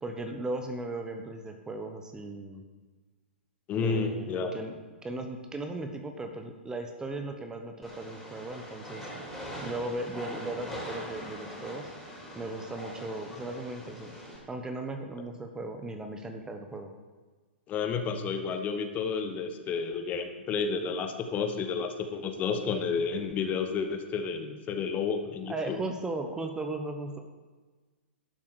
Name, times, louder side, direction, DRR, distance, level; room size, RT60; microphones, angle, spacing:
voice 1, 0.0-2.6 3.8-4.7 5.0-9.1 9.6-11.9 12.3-14.1 14.5-16.9 25.5-27.2, right 2 dB, 10° right, 5 dB, 1.0 m, -37 dB
voice 2, 3.7-4.5 17.7-25.8, left 5 dB, 25° left, 6 dB, 1.1 m, -31 dB
Train, 7.8-14.4, equal, 5° left, 4.1 m, -42 dB
11.5 x 7.4 x 6.3 m, 1.3 s
figure-of-eight pair, 110°, 6 cm